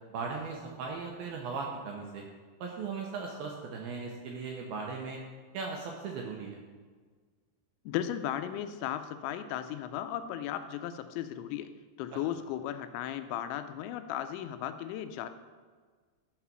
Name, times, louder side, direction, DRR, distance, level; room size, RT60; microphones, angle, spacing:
voice 1, 0.1-2.2 2.6-5.2 5.5-6.6, right 4 dB, 80° right, 0 dB, 2.2 m, -38 dB
voice 2, 7.9-11.7 12.0-15.3, left 11 dB, 85° left, 10 dB, 2.9 m, -36 dB
11.5 x 4.0 x 6.0 m, 1.5 s
omnidirectional pair, 5.2 m